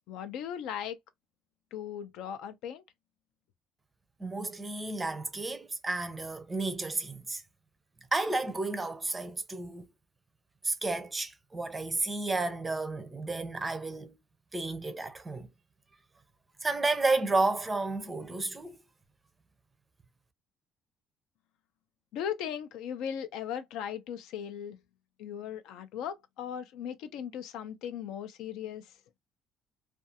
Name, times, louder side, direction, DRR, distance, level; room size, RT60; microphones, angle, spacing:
voice 1, 0.1-1.0 1.7-2.8 22.1-24.8 25.2-28.9, left 9 dB, 85° left, 0.5 m, -38 dB
voice 2, 4.2-7.4 8.1-9.9 10.6-14.1 14.5-15.5 16.6-18.8, right 3 dB, 15° right, 0.5 m, -32 dB
2.4 x 2.3 x 2.7 m
cardioid pair, 150°, 0 cm